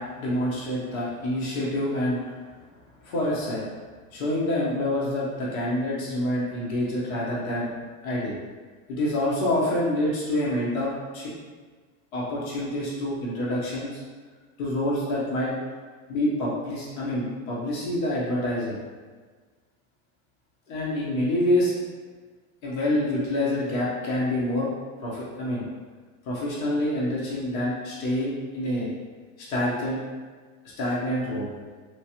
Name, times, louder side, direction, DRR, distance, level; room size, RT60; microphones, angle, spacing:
voice 1, 0.0-2.2 3.0-3.6 4.1-7.7 8.0-8.4 8.9-11.3 12.1-14.0 14.6-15.5 16.1-18.7 20.7-21.7 22.6-24.7 25.0-25.6 26.3-28.9 29.5-30.0 30.8-31.5, left 1 dB, 80° left, -6 dB, 1.2 m, -27 dB
3.1 x 3.0 x 2.9 m, 1.4 s
hypercardioid pair, 90°, 41 cm